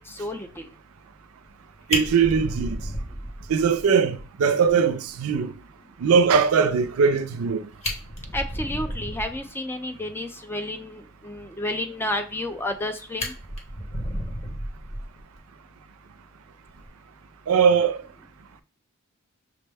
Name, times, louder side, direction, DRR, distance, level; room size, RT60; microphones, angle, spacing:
voice 1, 0.1-0.7 8.3-13.3, left 1 dB, 10° left, 0.4 m, -31 dB
Fire, 1.5-1.6 1.9-3.8 4.2-4.3 4.7-4.8 5.1-5.2 7.3-7.4 7.7-9.5 12.3-12.8 13.2-15.4 16.7-16.9, equal, 30° left, 1.0 m, -32 dB
voice 2, 1.9-2.8 3.5-5.5 6.0-7.7 17.5-18.0, right 6 dB, 80° right, 0.4 m, -20 dB
5.9 x 2.1 x 3.4 m
head